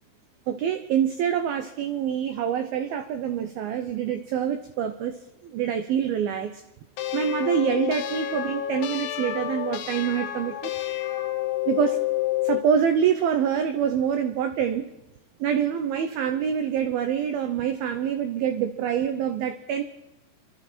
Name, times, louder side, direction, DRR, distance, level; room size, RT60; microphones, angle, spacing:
voice 1, 0.5-6.6 7.1-10.7 11.7-12.0 12.4-14.9 15.4-19.8, right 8 dB, 85° right, 7 dB, 2.1 m, -26 dB
sound 1, 7.0-12.7, left 14 dB, 85° left, 3.2 m, -29 dB
25.0 x 12.5 x 4.3 m, 0.92 s
omnidirectional pair, 5.3 m